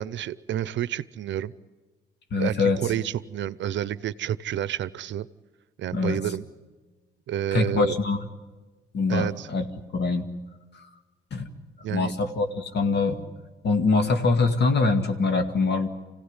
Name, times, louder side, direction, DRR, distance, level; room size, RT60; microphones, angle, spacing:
voice 1, 0.0-1.5 2.4-5.3 5.8-6.4 7.3-8.0 9.1-9.5 11.8-12.1, right 11 dB, 70° right, 17 dB, 0.7 m, -29 dB
voice 2, 2.3-2.8 5.9-6.2 7.5-8.2 8.9-9.6 9.9-10.2 11.3-11.5 11.9-13.2 13.6-15.9, left 3 dB, 60° left, 7 dB, 2.2 m, -23 dB
25.5 x 17.0 x 9.8 m, 1.3 s
cardioid pair, 90°, 20 cm